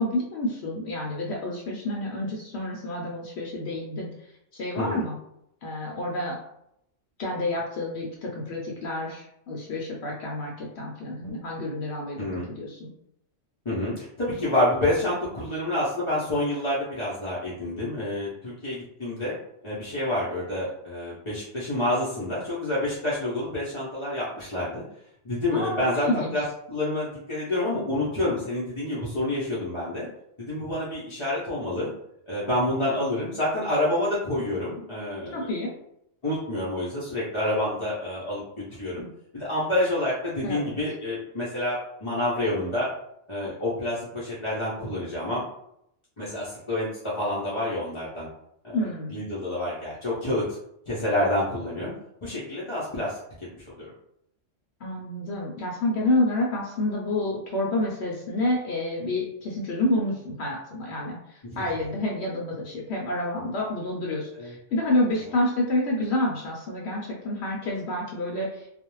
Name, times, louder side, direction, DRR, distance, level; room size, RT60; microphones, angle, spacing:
voice 1, 0.0-4.1 4.5-5.1 5.6-6.3 7.2-12.2 12.6-12.9 25.5-26.4 35.3-35.7 40.4-40.8 48.7-49.2 54.8-68.7, left 1 dB, 65° left, -2 dB, 0.8 m, -29 dB
voice 2, 12.2-12.5 13.7-19.3 19.6-24.8 25.2-30.1 30.4-31.9 32.3-35.5 36.2-38.4 38.8-39.0 39.3-42.9 43.3-45.4 46.2-46.9 47.2-48.3 48.6-48.8 49.1-50.4 50.9-51.9 52.2-53.2 53.8-53.9 61.4-61.6 64.3-64.5, left 1 dB, 40° left, -8 dB, 0.4 m, -28 dB
2.4 x 2.0 x 3.0 m, 0.77 s
omnidirectional pair, 1.3 m